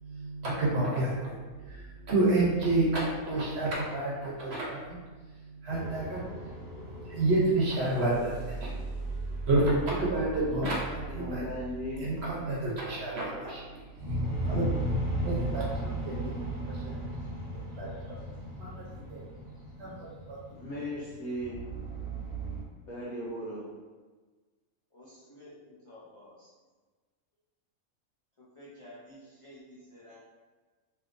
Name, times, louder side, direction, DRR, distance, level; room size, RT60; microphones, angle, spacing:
voice 1, 0.0-5.0 5.6-6.2 7.0-8.7 9.5-11.4 12.0-13.6 14.4-14.7 15.2-16.3 16.8-17.0 17.8-18.2 18.6-19.2 19.8-20.0 20.3-20.4, right 2 dB, 55° right, -4 dB, 0.8 m, -29 dB
sound 1, 5.7-10.5 14.0-22.6, right 1 dB, 15° right, 0.8 m, -36 dB
sound 2, 7.3-15.0 17.1-17.3 17.7-18.3 18.9-19.0 19.5-19.8, right 3 dB, 30° left, 1.6 m, -41 dB
voice 2, 11.1-12.1 20.5-21.7 22.9-23.6, equal, 90° left, -9 dB, 1.2 m, -37 dB
voice 3, 24.9-26.5 28.4-30.2, left 1 dB, 55° left, -10 dB, 0.3 m, -52 dB
3.4 x 2.7 x 2.5 m, 1.3 s
omnidirectional pair, 1.5 m